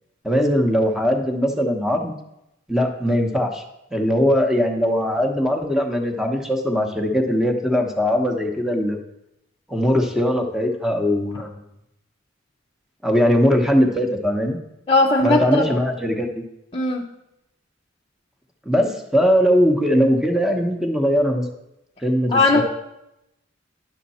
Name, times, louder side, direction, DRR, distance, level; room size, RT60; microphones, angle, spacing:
voice 1, 0.2-2.1 2.7-3.6 3.9-9.0 9.7-11.6 13.0-14.6 15.2-16.4 18.7-21.4 22.0-22.6, equal, 5° right, 3 dB, 1.0 m, -20 dB
voice 2, 14.9-15.8 16.7-17.1 22.3-22.6, left 2 dB, 30° left, -1 dB, 0.7 m, -18 dB
10.5 x 6.6 x 4.2 m, 0.86 s
head